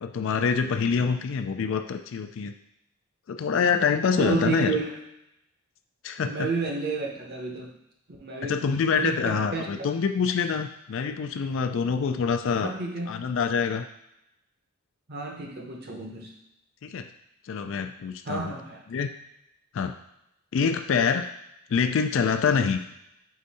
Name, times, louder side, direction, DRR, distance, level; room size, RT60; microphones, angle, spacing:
voice 1, 0.0-2.5 3.3-4.8 6.0-6.5 8.4-12.7 13.1-13.8 16.8-17.1 17.5-18.5 18.9-19.1 19.7-19.9 20.5-21.3 21.7-22.8, left 6 dB, 60° left, 7 dB, 0.3 m, -25 dB
voice 2, 4.2-4.9 6.2-7.7 8.2-9.6 12.6-13.2 15.1-16.3 18.3-18.8, right 4 dB, 45° right, 1 dB, 0.7 m, -31 dB
4.9 x 2.6 x 4.1 m, 0.83 s
head